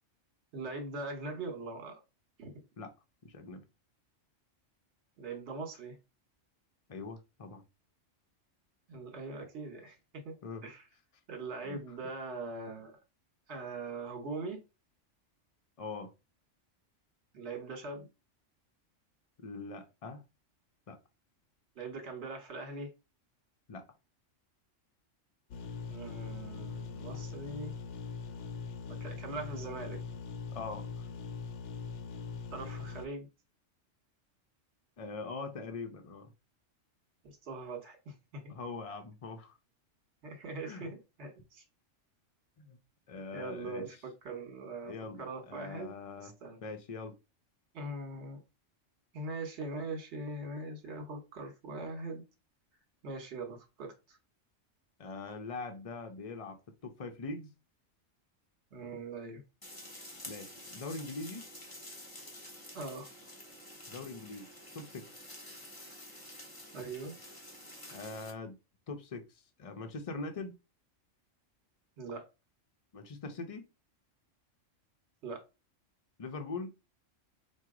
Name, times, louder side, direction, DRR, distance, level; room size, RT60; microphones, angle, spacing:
voice 1, 0.5-2.0 2.4-2.5 5.2-6.0 8.9-10.4 10.6-10.8 11.3-13.0 13.5-14.6 17.3-18.1 21.8-22.9 25.9-27.7 28.9-30.0 32.5-33.3 37.2-38.5 40.2-41.6 43.3-45.9 46.2-46.6 47.7-48.4 49.1-52.2 53.0-54.2 58.7-59.4 62.7-63.1 66.7-67.1 72.0-72.3 75.2-75.4, right 3 dB, 60° right, 1.4 m, -41 dB
voice 2, 3.2-3.6 6.9-7.6 10.4-10.7 11.6-11.8 15.8-16.1 19.4-20.2 20.9-21.0 23.7-23.9 30.5-30.9 35.0-36.3 38.5-39.6 40.6-40.9 42.6-42.8 43.1-43.9 44.8-46.3 46.6-47.1 55.0-57.5 60.2-61.4 63.9-64.5 64.7-65.2 67.9-68.6 68.9-70.5 72.9-73.7 76.2-76.7, left 3 dB, 35° left, 0.6 m, -42 dB
sound 1, 25.5-33.1, left 5 dB, 70° left, 0.9 m, -42 dB
sound 2, 59.6-68.3, left 1 dB, 20° left, 1.0 m, -49 dB
4.6 x 2.3 x 3.7 m
omnidirectional pair, 1.3 m